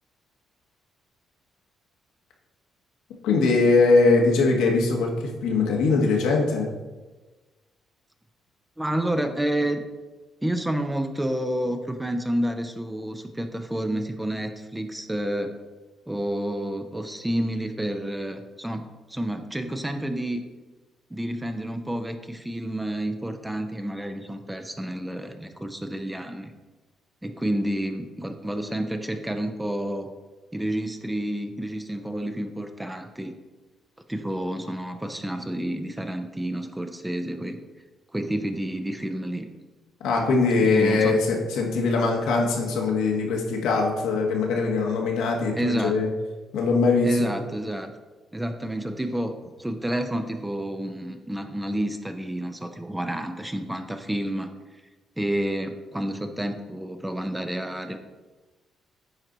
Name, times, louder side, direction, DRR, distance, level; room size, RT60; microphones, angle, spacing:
voice 1, 3.2-6.7 40.0-46.1 46.5-47.1, left 3 dB, 90° left, 0 dB, 1.4 m, -21 dB
voice 2, 8.8-9.8 10.4-15.5 16.1-20.4 21.1-26.5 27.2-30.1 30.5-33.3 34.1-37.6 38.1-39.5 40.6-41.2 45.5-46.0 47.0-47.9 48.3-54.5 55.2-58.0, right 1 dB, 10° right, 7 dB, 0.7 m, -29 dB
9.0 x 4.6 x 4.0 m, 1.2 s
cardioid pair, 90°, 0 cm